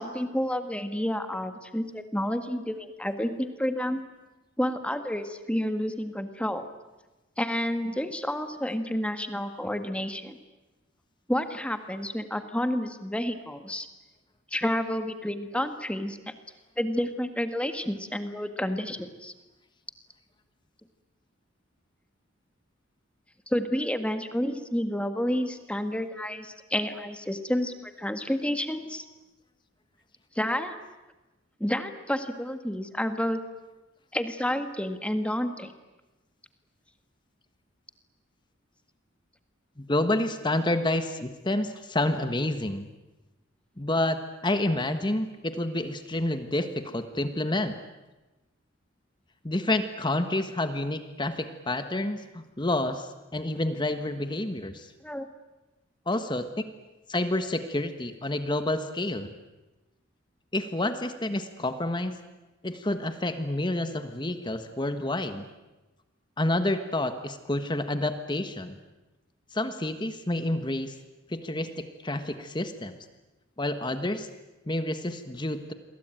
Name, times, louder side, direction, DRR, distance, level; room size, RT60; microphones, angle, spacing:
voice 1, 0.0-4.0 4.6-6.7 7.4-10.4 11.3-13.9 14.5-16.2 16.8-19.3 23.5-29.0 30.4-30.8 31.6-33.4 34.1-35.7 55.0-55.3, equal, 5° left, 8 dB, 1.8 m, -30 dB
voice 2, 39.8-42.9 43.8-47.8 49.4-54.9 56.1-56.5 57.1-59.3 60.5-62.1 62.6-65.5 66.4-68.8 69.5-70.9 71.3-72.9 73.6-74.3 74.7-75.7, left 1 dB, 25° left, 9 dB, 1.4 m, -29 dB
28.5 x 23.0 x 9.1 m, 1.1 s
head